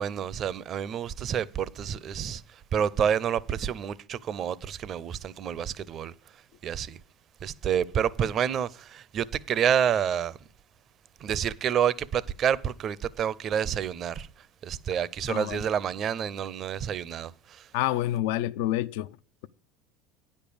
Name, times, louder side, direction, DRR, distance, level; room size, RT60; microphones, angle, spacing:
voice 1, 0.0-7.0 7.4-10.4 11.2-17.7, right 8 dB, 45° right, 0.6 m, -29 dB
voice 2, 15.3-15.6 17.7-19.2, left 14 dB, 75° left, 0.4 m, -28 dB
9.7 x 5.3 x 6.8 m
hypercardioid pair, 85°, 0 cm